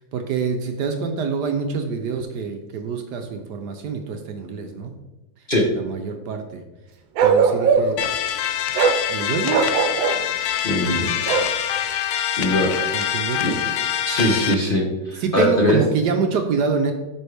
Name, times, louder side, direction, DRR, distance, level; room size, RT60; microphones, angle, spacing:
voice 1, 0.1-4.9 5.8-6.6 7.2-8.0 9.1-9.7 10.2-10.3 12.9-13.4 15.2-16.9, right 5 dB, 70° right, 6 dB, 1.2 m, -26 dB
Bark, 7.2-8.1 8.7-9.0 9.5-10.2 11.3-11.5, right 6 dB, 90° right, 1.5 m, -19 dB
sound 1, 8.0-14.5, left 10 dB, 75° left, 0.9 m, -25 dB
voice 2, 10.6-11.1 12.4-12.7 13.4-13.5 14.1-15.8, left 1 dB, 35° left, -1 dB, 1.1 m, -21 dB
8.7 x 6.2 x 3.4 m, 1.1 s
omnidirectional pair, 2.1 m